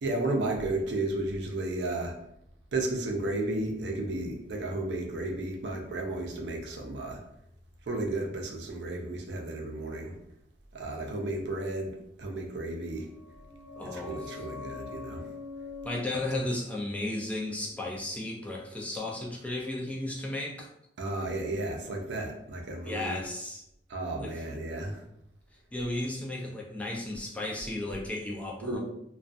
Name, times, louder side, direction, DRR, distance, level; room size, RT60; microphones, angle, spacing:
voice 1, 0.0-2.1 2.7-7.2 7.9-10.2 10.7-13.1 13.9-15.3 16.1-16.2 21.0-23.2 23.9-25.0 28.6-28.8, right 2 dB, 80° right, 1 dB, 0.5 m, -33 dB
sound 1, 12.9-18.4 18.6-18.7, left 4 dB, 35° right, 0.6 m, -45 dB
voice 2, 13.8-14.3 15.8-20.7 22.8-23.6 24.2-24.4 25.7-28.8, left 2 dB, 10° left, -2 dB, 0.3 m, -34 dB
2.3 x 2.2 x 2.5 m, 0.79 s
head